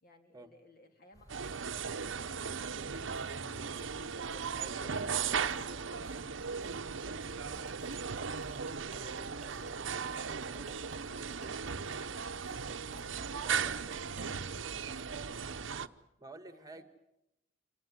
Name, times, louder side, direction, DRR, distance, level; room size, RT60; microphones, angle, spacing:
voice 1, 0.0-3.4 4.8-7.6 8.2-12.7 13.1-15.7 16.5-16.8, left 1 dB, 50° left, 6 dB, 3.1 m, -60 dB
sound 1, 1.1-15.7, equal, 20° left, 4.8 m, -55 dB
sound 2, 1.3-15.9, right 6 dB, 75° right, 0.9 m, -37 dB
voice 2, 4.2-4.9 8.9-9.2 13.4-13.7 16.2-16.8, right 2 dB, 20° right, 10 dB, 1.5 m, -50 dB
sound 3, 7.4-14.4, right 4 dB, 40° right, 0.9 m, -53 dB
27.0 x 18.5 x 9.7 m, 0.85 s
head